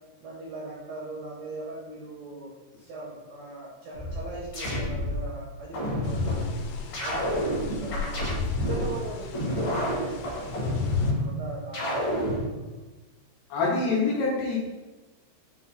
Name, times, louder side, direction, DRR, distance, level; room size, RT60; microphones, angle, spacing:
voice 1, 0.2-2.5 2.9-6.6 7.0-8.3 8.5-12.4, right 2 dB, 75° right, -5 dB, 1.9 m, -40 dB
sound 1, 3.9-5.2 5.7-6.4 6.9-8.9 9.3-11.2 11.7-12.4, left 1 dB, 50° left, 1.5 m, -28 dB
sound 2, 6.0-11.1, left 3 dB, 90° left, 3.2 m, -38 dB
voice 2, 13.5-14.6, left 3 dB, 70° left, -4 dB, 2.9 m, -25 dB
7.6 x 3.3 x 4.0 m, 1.1 s
omnidirectional pair, 5.4 m